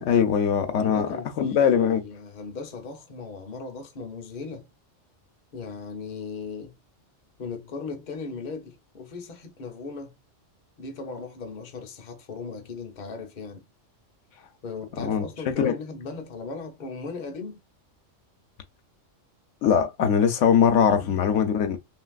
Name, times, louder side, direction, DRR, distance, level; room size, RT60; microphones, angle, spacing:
voice 1, 0.0-2.0 15.0-15.7 19.6-21.8, left 7 dB, 75° left, 0.9 m, -22 dB
voice 2, 0.7-4.7 5.5-6.8 7.4-10.2 10.8-13.6 14.6-17.6 20.9-21.2, left 4 dB, 45° left, 0.7 m, -37 dB
3.1 x 2.6 x 2.3 m
omnidirectional pair, 1.3 m